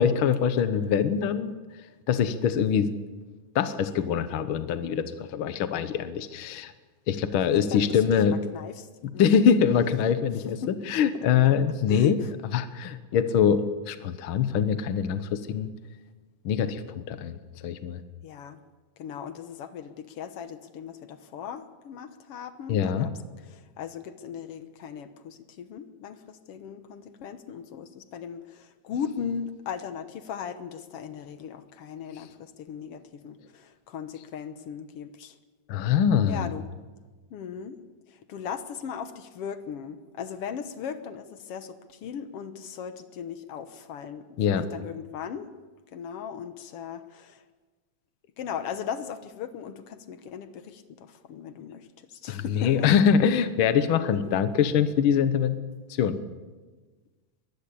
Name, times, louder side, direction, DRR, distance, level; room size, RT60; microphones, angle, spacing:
voice 1, 0.0-1.5 2.1-2.9 3.5-6.7 7.1-8.4 9.0-12.2 12.5-15.7 16.4-18.0 22.7-23.1 35.7-36.5 44.4-44.6 52.3-55.6 55.9-56.2, left 7 dB, 80° left, 11 dB, 1.1 m, -24 dB
voice 2, 7.5-8.9 9.1-9.4 10.6-10.7 11.9-12.3 18.2-18.6 19.0-23.1 23.4-35.4 36.3-36.7 37.3-37.8 38.1-45.5 45.9-47.4 48.4-52.9, left 7 dB, 65° left, 11 dB, 1.6 m, -38 dB
21.5 x 15.5 x 8.6 m, 1.3 s
omnidirectional pair, 3.8 m